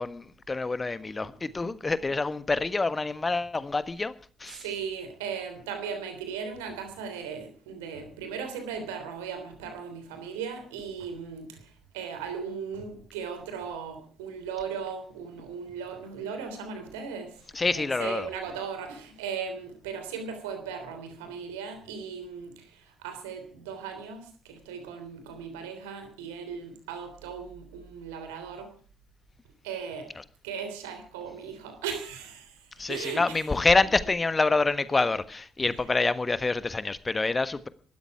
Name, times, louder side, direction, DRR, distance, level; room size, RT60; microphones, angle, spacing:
voice 1, 0.0-4.1 4.4-4.6 17.5-18.3 32.8-37.7, left 3 dB, 25° left, 1.4 m, -27 dB
voice 2, 4.5-28.7 29.6-30.1 30.4-32.6 32.9-33.5 35.6-35.7, right 6 dB, 70° right, 3.4 m, -37 dB
18.5 x 13.0 x 4.8 m
figure-of-eight pair, 45°, 0 cm